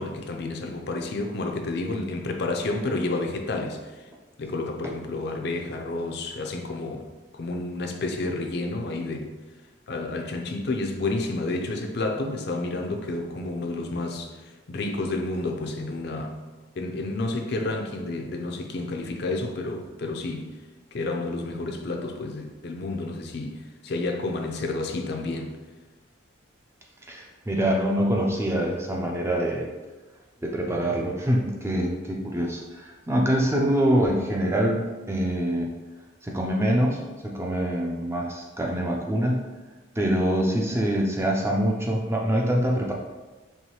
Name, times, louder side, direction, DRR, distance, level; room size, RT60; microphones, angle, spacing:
voice 1, 0.0-4.1 4.4-7.1 7.3-9.4 9.9-16.4 16.8-20.5 20.9-25.5, left 2 dB, 55° left, 3 dB, 0.4 m, -30 dB
voice 2, 27.0-29.7 30.4-35.7 36.2-39.5 40.0-42.9, equal, 15° right, 0 dB, 0.3 m, -25 dB
4.7 x 3.0 x 2.9 m, 1.2 s
head